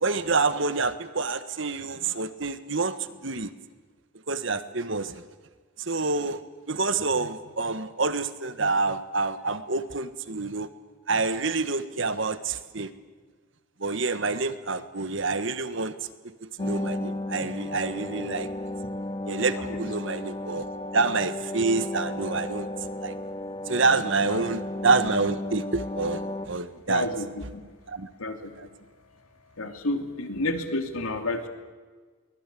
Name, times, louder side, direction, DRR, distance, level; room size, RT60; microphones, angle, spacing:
voice 1, 0.0-2.9 3.2-3.5 4.3-5.3 5.8-6.4 6.7-10.7 11.1-12.9 13.8-15.9 16.2-18.5 19.3-20.7 20.9-22.7 23.0-23.1 23.7-27.1 27.9-28.1 28.6-28.7, right 3 dB, 60° right, 11 dB, 1.5 m, -27 dB
sound 1, 16.6-26.5, left 1 dB, 25° left, 1.1 m, -34 dB
voice 2, 26.9-27.6 28.2-28.7 29.6-31.5, left 2 dB, 85° left, 5 dB, 3.1 m, -30 dB
23.5 x 20.0 x 8.5 m, 1.4 s
head